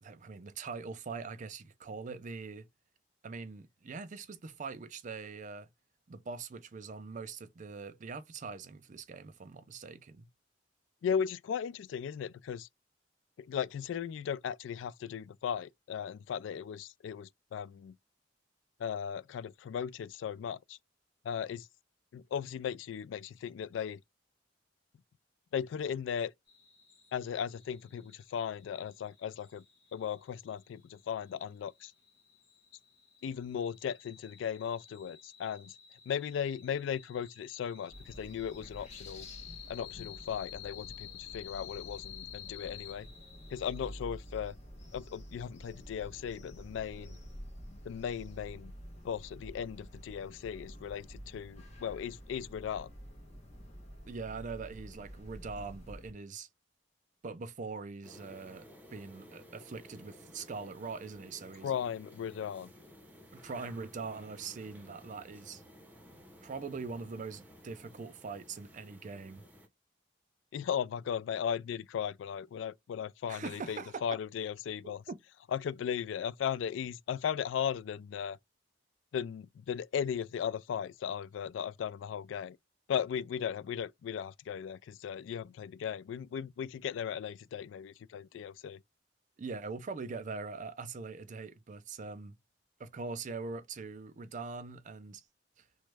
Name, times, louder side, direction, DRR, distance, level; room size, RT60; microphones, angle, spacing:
voice 1, 0.0-2.7 3.2-5.7 6.1-10.3 54.1-56.5 57.2-61.8 63.3-65.6 66.4-69.5 73.3-74.0 74.8-75.2 89.4-92.4 92.8-95.2 95.6-95.7, right 4 dB, 45° right, 0.4 m, -42 dB
voice 2, 11.0-12.7 13.4-17.9 18.8-20.8 21.2-21.7 22.1-24.0 25.5-26.3 27.1-29.6 29.9-31.9 33.2-35.8 36.1-39.3 39.7-43.1 43.5-44.6 44.9-47.2 47.8-48.7 49.0-52.9 61.6-62.7 70.5-75.0 75.5-78.4 79.1-82.6 82.9-88.8, left 8 dB, 85° left, 0.3 m, -37 dB
sound 1, 26.5-43.9, left 11 dB, 70° left, 1.5 m, -52 dB
sound 2, 37.9-56.1, equal, 40° left, 1.0 m, -49 dB
sound 3, 58.0-69.7, equal, 10° right, 0.7 m, -55 dB
3.0 x 2.2 x 3.3 m
head